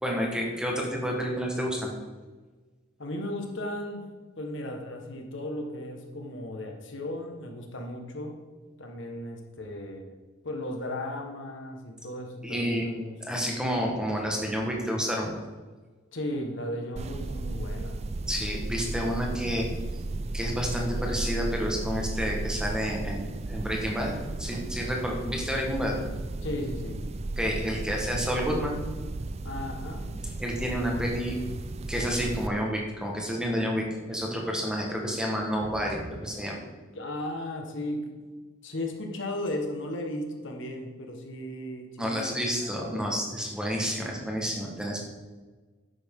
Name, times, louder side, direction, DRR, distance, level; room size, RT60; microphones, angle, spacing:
voice 1, 0.0-1.9 12.4-12.9 13.2-15.3 18.3-19.7 20.3-26.0 27.4-28.8 30.4-31.4 31.9-36.6 42.0-45.0, equal, 5° right, -1 dB, 1.5 m, -30 dB
voice 2, 3.0-4.1 4.4-8.4 8.8-10.1 10.4-13.5 16.1-18.0 26.4-27.0 29.4-30.1 36.9-38.1 38.6-43.1, left 1 dB, 65° left, 3 dB, 1.5 m, -36 dB
sound 1, 17.0-32.5, right 2 dB, 30° right, 0.4 m, -34 dB
11.0 x 8.8 x 3.8 m, 1.3 s
head